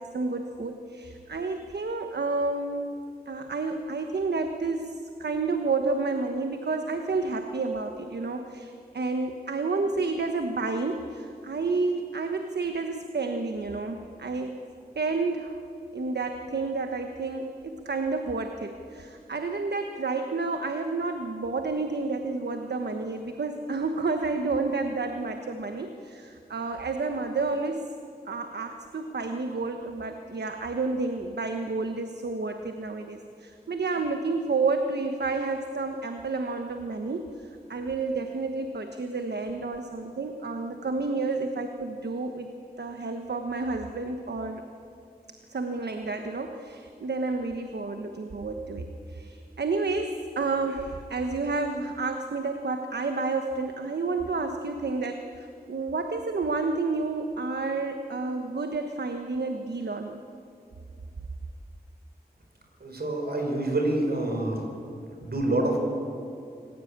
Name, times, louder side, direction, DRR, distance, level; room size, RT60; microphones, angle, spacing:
voice 1, 0.0-2.9 3.3-14.6 14.9-15.6 15.9-27.9 28.3-42.5 42.8-44.6 45.5-60.2, right 3 dB, 85° right, 5 dB, 1.2 m, -30 dB
voice 2, 62.8-64.7 65.2-65.8, right 2 dB, 70° right, 2 dB, 5.1 m, -27 dB
26.5 x 15.5 x 8.8 m, 2.5 s
wide cardioid pair, 75°, 17 cm